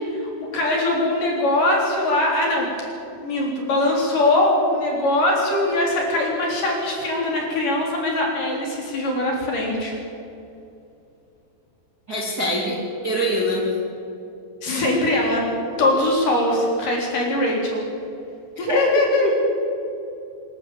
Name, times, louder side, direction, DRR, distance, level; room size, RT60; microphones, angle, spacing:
voice 1, 0.1-2.7 3.2-10.0 14.6-15.5 15.8-17.8 18.6-19.3, left 1 dB, 45° left, -1 dB, 4.9 m, -21 dB
voice 2, 12.1-13.7 18.7-18.8, equal, 25° right, -3 dB, 2.4 m, -24 dB
25.5 x 13.5 x 8.6 m, 2.7 s
omnidirectional pair, 5.7 m